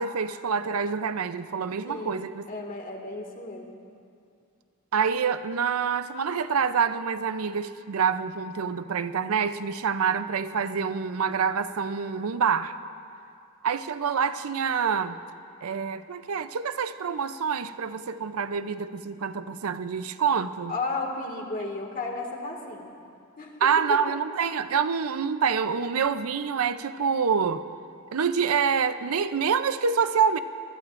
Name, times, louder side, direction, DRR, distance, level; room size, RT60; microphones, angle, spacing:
voice 1, 0.0-2.4 4.9-12.8 13.6-15.2 15.6-20.7 23.6-27.6 28.1-30.4, right 6 dB, 75° right, 12 dB, 0.5 m, -26 dB
voice 2, 1.8-3.8 20.7-22.9 23.4-23.6 23.9-24.2, left 3 dB, 40° left, 1 dB, 2.0 m, -34 dB
25.0 x 20.5 x 2.5 m, 2.5 s
head